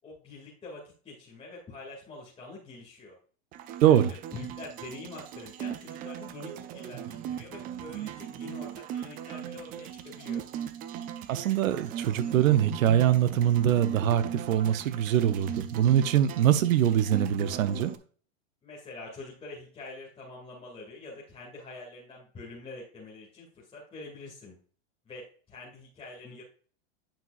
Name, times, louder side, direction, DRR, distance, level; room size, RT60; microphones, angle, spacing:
voice 1, 0.0-3.2 3.8-4.0 4.3-10.5 18.6-24.6 25.1-26.4, left 3 dB, 15° left, 2.3 m, -45 dB
sound 1, 3.5-18.0, right 10 dB, 25° right, 0.3 m, -38 dB
voice 2, 11.3-17.9, right 10 dB, 85° right, 0.8 m, -23 dB
9.0 x 5.7 x 2.5 m
supercardioid pair, 130°, 39 cm